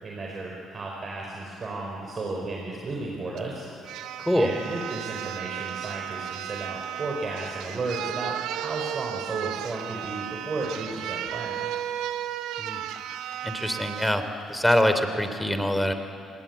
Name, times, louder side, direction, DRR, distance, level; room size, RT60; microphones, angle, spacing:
voice 1, 0.0-3.6 4.3-11.6, right 2 dB, 45° right, -1 dB, 5.0 m, -34 dB
sound 1, 3.4-3.5 3.8-14.2 14.7-14.9, right 11 dB, 70° right, 0.9 m, -34 dB
voice 2, 4.2-4.5 12.6-12.8 13.4-14.2 14.5-15.9, equal, 5° left, 8 dB, 3.2 m, -24 dB
27.0 x 20.0 x 8.4 m, 2.5 s
hypercardioid pair, 50°, 0 cm